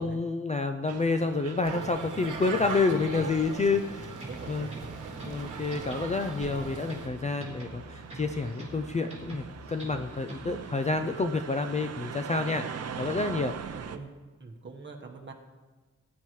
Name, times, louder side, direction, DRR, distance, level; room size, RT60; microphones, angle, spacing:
voice 1, 0.0-4.2 4.5-4.7 5.2-12.7 13.0-13.6, left 3 dB, 25° left, 7 dB, 0.4 m, -29 dB
sound 1, 0.9-14.0, right 7 dB, 55° right, 0.6 m, -43 dB
sound 2, 1.6-7.1, right 4 dB, 75° right, 1.3 m, -39 dB
sound 3, 4.1-10.7, right 1 dB, 20° right, 3.5 m, -45 dB
voice 2, 4.3-4.8 13.9-14.1 14.4-15.3, right 4 dB, 35° right, 1 dB, 1.3 m, -43 dB
18.5 x 10.0 x 3.1 m, 1.3 s
wide cardioid pair, 170°, 31 cm